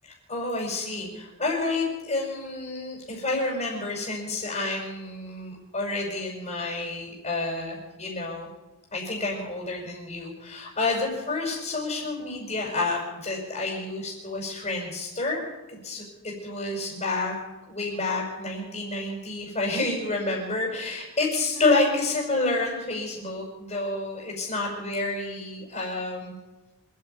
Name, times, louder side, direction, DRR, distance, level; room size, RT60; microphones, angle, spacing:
voice 1, 0.0-8.5 8.9-15.4 15.7-17.3 17.7-26.3, left 2 dB, 30° left, -2 dB, 6.1 m, -29 dB
27.0 x 10.0 x 9.5 m, 1.1 s
head